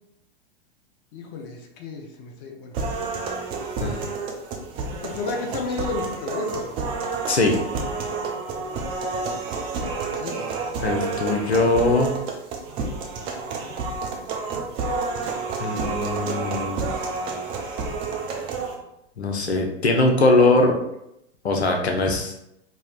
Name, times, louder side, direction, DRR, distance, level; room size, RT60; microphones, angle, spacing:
voice 1, 1.1-2.8 4.9-6.7 10.0-10.4, left 4 dB, 40° left, 2 dB, 0.6 m, -32 dB
sound 1, 2.7-18.7, right 4 dB, 15° right, 0.3 m, -29 dB
voice 2, 7.3-7.6 10.8-12.1 15.6-16.9 19.2-20.8 21.4-22.3, left 2 dB, 80° left, 2 dB, 0.7 m, -21 dB
4.2 x 2.7 x 2.3 m, 0.81 s
figure-of-eight pair, 95°, 32 cm